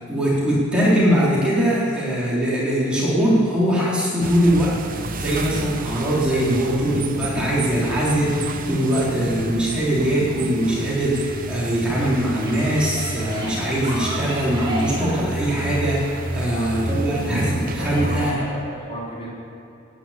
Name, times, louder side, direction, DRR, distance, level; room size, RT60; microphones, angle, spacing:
voice 1, 0.1-18.4, equal, 5° right, -8 dB, 3.9 m, -21 dB
sound 1, 4.2-18.3, right 2 dB, 40° right, 0.8 m, -30 dB
sound 2, 11.9-18.5, right 1 dB, 20° right, 3.4 m, -35 dB
voice 2, 16.2-17.2 17.5-19.3, right 1 dB, 30° left, -6 dB, 3.7 m, -34 dB
11.5 x 10.5 x 9.2 m, 2.8 s
head